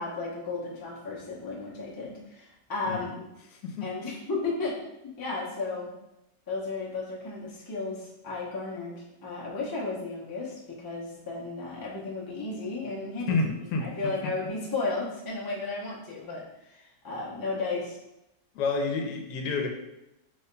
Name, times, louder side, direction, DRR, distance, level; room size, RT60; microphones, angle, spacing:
voice 1, 0.0-3.2 3.8-5.9 6.5-13.3 13.8-18.0, left 3 dB, 25° left, -5 dB, 0.5 m, -34 dB
voice 2, 3.5-3.9 13.3-14.1 18.5-19.7, left 3 dB, 85° left, 2 dB, 1.2 m, -29 dB
5.1 x 3.4 x 2.2 m, 0.90 s
omnidirectional pair, 1.7 m